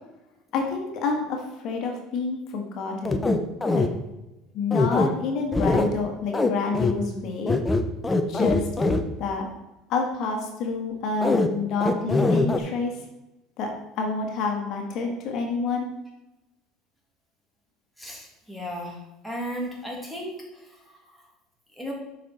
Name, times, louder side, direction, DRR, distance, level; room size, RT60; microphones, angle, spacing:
voice 1, 0.5-3.3 3.7-3.9 4.5-7.5 8.3-8.7 9.2-9.5 9.9-13.0 13.6-15.9, left 4 dB, 60° left, 2 dB, 1.5 m, -28 dB
sound 1, 3.0-3.9 4.7-5.1 5.5-5.9 6.3-6.5 6.7-6.9 7.5-9.0 11.2-11.5 11.8-12.6, left 3 dB, 15° left, 0.7 m, -22 dB
voice 2, 18.0-19.0 19.2-21.2 21.7-21.9, equal, 5° right, -2 dB, 2.4 m, -35 dB
7.5 x 5.5 x 4.2 m, 0.96 s
supercardioid pair, 105°, 0 cm